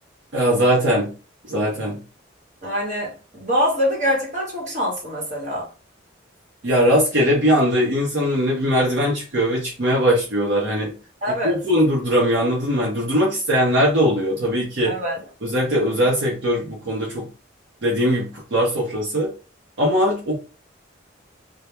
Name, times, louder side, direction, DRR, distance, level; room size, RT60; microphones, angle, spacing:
voice 1, 0.3-1.1 1.5-2.0 6.6-10.9 11.4-15.0 15.4-17.2 17.8-19.3 19.8-20.4, equal, 65° right, 0.7 m, -20 dB
voice 2, 2.6-5.7 11.2-11.6 14.8-15.2, equal, 40° right, 1.1 m, -24 dB
2.2 x 2.2 x 2.9 m
head